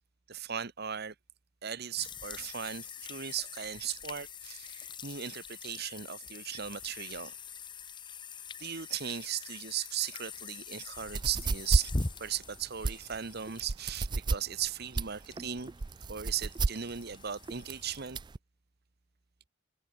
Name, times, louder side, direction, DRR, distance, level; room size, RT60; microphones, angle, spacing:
voice 1, 0.3-1.1 1.6-7.3 8.6-11.9 12.2-15.7 16.1-18.2, right 9 dB, 50° right, 1.2 m, -37 dB
sound 1, 2.0-18.0, left 4 dB, 25° left, 0.9 m, -44 dB
sound 2, 11.0-18.4, right 3 dB, 20° right, 0.3 m, -32 dB
head